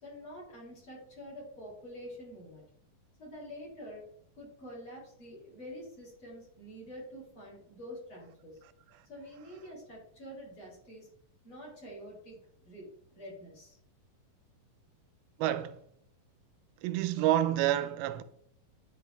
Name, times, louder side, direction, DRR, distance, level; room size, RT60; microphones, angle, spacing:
voice 1, 0.0-2.6 3.2-4.1 4.3-8.6 9.1-11.1 11.4-13.8, equal, 35° left, 4.1 m, -47 dB
voice 2, 15.4-15.8 16.8-18.2, right 12 dB, 90° right, 2.5 m, -28 dB
10.0 x 4.8 x 3.4 m
omnidirectional pair, 4.2 m